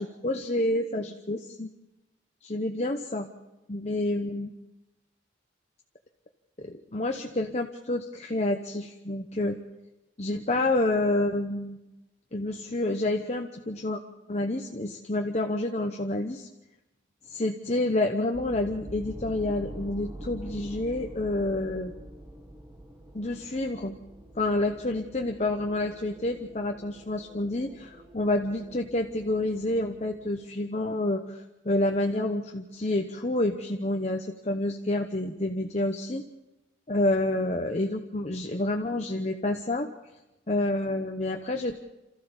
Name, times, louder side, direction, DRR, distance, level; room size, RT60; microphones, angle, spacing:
voice 1, 0.0-1.7 2.4-3.3 3.7-4.5 6.6-9.6 10.2-11.8 12.3-14.0 14.3-16.5 17.3-21.9 23.1-23.9 24.4-36.2 36.9-39.9 40.5-41.8, left 2 dB, 35° left, 4 dB, 0.9 m, -28 dB
sound 1, 18.3-30.3, right 1 dB, 15° right, 1.8 m, -45 dB
27.5 x 14.5 x 7.2 m, 1.0 s
head